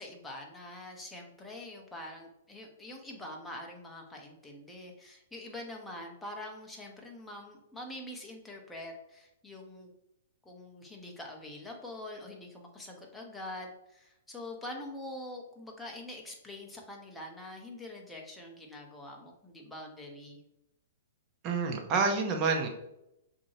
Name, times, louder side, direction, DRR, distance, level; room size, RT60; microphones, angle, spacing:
voice 1, 0.0-9.9 10.4-20.4, left 1 dB, 5° left, -1 dB, 0.9 m, -45 dB
voice 2, 21.4-22.7, right 4 dB, 30° right, 2 dB, 0.8 m, -28 dB
6.1 x 2.8 x 2.8 m, 0.84 s
hypercardioid pair, 140°, 0 cm